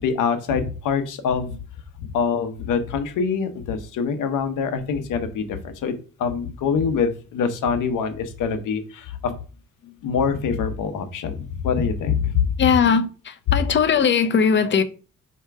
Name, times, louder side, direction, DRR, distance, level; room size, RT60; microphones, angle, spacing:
voice 1, 0.0-1.5 2.0-5.9 6.2-9.3 10.0-12.5, left 6 dB, 80° left, 0.8 m, -24 dB
voice 2, 12.6-14.8, left 6 dB, 40° left, 0.5 m, -19 dB
3.3 x 2.9 x 4.6 m
cardioid pair, 105°, 31 cm